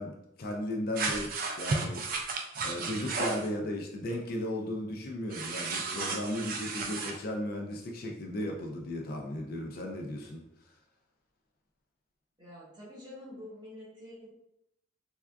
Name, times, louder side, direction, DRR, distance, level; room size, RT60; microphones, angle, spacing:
voice 1, 0.0-10.4, left 1 dB, 50° left, 1 dB, 0.4 m, -36 dB
sound 1, 0.9-3.5 5.3-7.1, right 3 dB, 45° right, 0.3 m, -33 dB
voice 2, 12.4-14.3, left 1 dB, 20° right, -6 dB, 0.9 m, -47 dB
3.5 x 2.3 x 2.2 m, 0.81 s
head